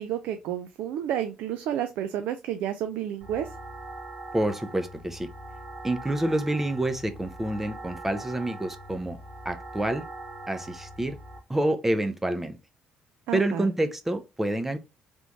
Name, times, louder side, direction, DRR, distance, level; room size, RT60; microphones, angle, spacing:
voice 1, 0.0-3.5 13.3-13.7, right 10 dB, 85° right, 0.4 m, -30 dB
sound 1, 3.2-11.4, right 2 dB, 60° right, 1.1 m, -42 dB
voice 2, 4.3-5.3 5.8-9.2 9.4-10.0 10.5-11.2 11.5-12.6 13.3-14.8, right 1 dB, 10° right, 0.5 m, -28 dB
3.5 x 2.5 x 3.0 m
cardioid pair, 100°, 3 cm